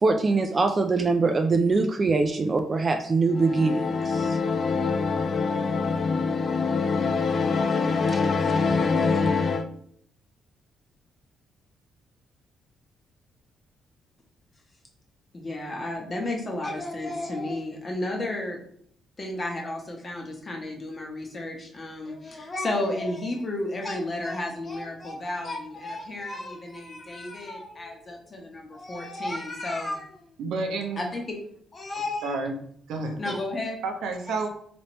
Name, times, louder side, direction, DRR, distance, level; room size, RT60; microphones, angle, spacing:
voice 1, 0.0-4.4 8.1-8.2, right 3 dB, 35° right, 5 dB, 0.3 m, -23 dB
sound 1, 3.3-9.7, left 4 dB, 50° left, 0.3 m, -24 dB
voice 2, 15.3-18.6 19.2-30.3 31.0-31.4 31.7-32.4 33.2-33.8, left 2 dB, 35° left, 1 dB, 0.9 m, -32 dB
voice 3, 30.4-31.0 32.2-32.5 32.9-33.2 33.8-34.5, right 3 dB, 80° right, 4 dB, 0.6 m, -30 dB
3.2 x 3.0 x 3.0 m, 0.64 s
cardioid pair, 90°, 0 cm